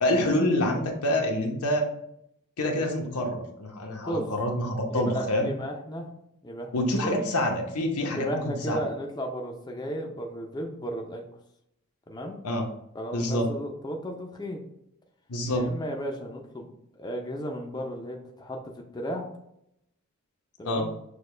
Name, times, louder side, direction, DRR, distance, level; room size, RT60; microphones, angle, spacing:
voice 1, 0.0-1.9 2.6-5.5 6.7-8.8 12.4-12.7 13.1-13.5 15.3-15.6 20.6-20.9, left 1 dB, 85° left, 2 dB, 0.9 m, -26 dB
voice 2, 4.9-6.1 6.4-7.1 8.1-11.2 12.1-12.4 12.9-14.6 15.5-16.7 17.0-19.3 20.6-20.9, equal, 20° left, 1 dB, 0.5 m, -34 dB
6.5 x 2.3 x 3.2 m, 0.77 s
head